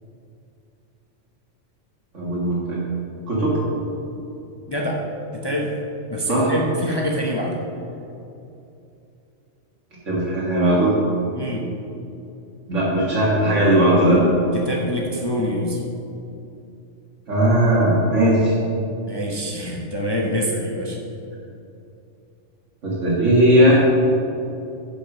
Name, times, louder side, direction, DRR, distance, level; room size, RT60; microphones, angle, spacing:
voice 1, 2.1-2.8 3.3-3.6 6.3-6.5 10.1-10.9 12.7-14.2 17.3-18.6 22.8-23.8, right 1 dB, 75° right, -8 dB, 2.1 m, -18 dB
voice 2, 4.7-5.0 5.3-5.7 6.1-7.6 11.3-11.7 14.5-15.8 19.1-21.0, equal, 25° left, -2 dB, 0.8 m, -25 dB
9.8 x 5.2 x 6.1 m, 2.7 s
omnidirectional pair, 1.3 m